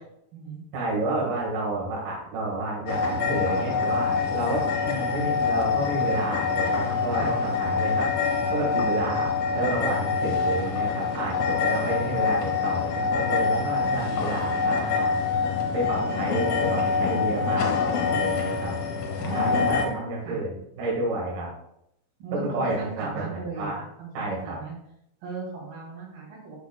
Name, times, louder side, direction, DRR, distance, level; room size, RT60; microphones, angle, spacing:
voice 1, 0.7-8.1 8.5-9.3 9.5-15.1 15.7-18.7 19.3-21.5 22.3-23.8 24.1-24.6, right 2 dB, 70° right, -5 dB, 3.2 m, -30 dB
sound 1, 2.9-19.9, left 5 dB, 70° left, 1.9 m, -25 dB
voice 2, 19.2-19.9 20.3-20.4 22.2-23.7 24.0-24.7 25.2-26.6, right 5 dB, 85° right, -4 dB, 4.1 m, -36 dB
11.0 x 5.0 x 2.2 m, 0.79 s
omnidirectional pair, 4.0 m